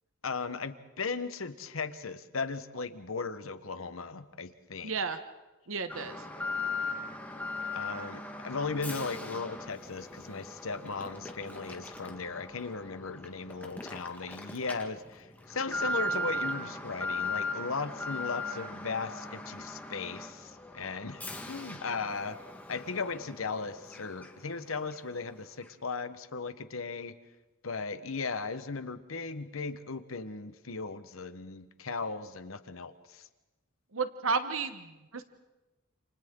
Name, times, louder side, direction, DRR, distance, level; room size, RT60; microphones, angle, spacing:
voice 1, 0.2-5.0 7.7-22.4 22.7-27.1 27.6-33.3, left 4 dB, 85° left, 11 dB, 1.2 m, -37 dB
voice 2, 4.8-5.2 5.7-6.3 33.9-35.2, right 4 dB, 75° right, 10 dB, 1.1 m, -32 dB
Alarm, 5.9-24.6 24.9-25.0 25.6-25.7, left 2 dB, 10° left, 1.7 m, -39 dB
29.5 x 28.0 x 3.9 m, 1.1 s
head